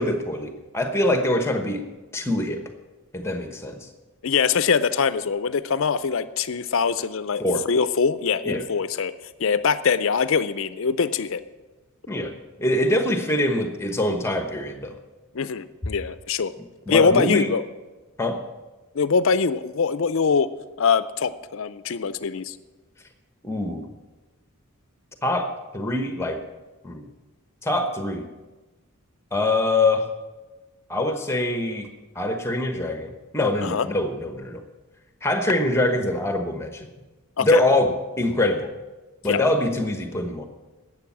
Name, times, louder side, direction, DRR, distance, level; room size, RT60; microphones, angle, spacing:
voice 1, 0.0-1.8 2.1-2.6 3.1-3.8 7.4-7.6 8.4-8.6 12.1-15.0 16.9-17.5 18.2-18.4 23.4-23.9 25.2-26.4 26.8-27.1 27.6-28.2 29.3-30.1 30.9-31.9 32.1-34.6 35.2-36.9 37.4-37.9 38.2-38.7 39.2-40.4, left 1 dB, 10° left, 7 dB, 1.0 m, -24 dB
voice 2, 4.2-7.4 7.7-9.1 9.4-11.4 15.3-16.5 16.9-17.6 18.9-20.5 20.8-22.5 33.6-33.9 37.4-37.6 39.3-39.4, left 5 dB, 60° left, 14 dB, 0.5 m, -23 dB
11.5 x 8.1 x 7.2 m, 1.2 s
head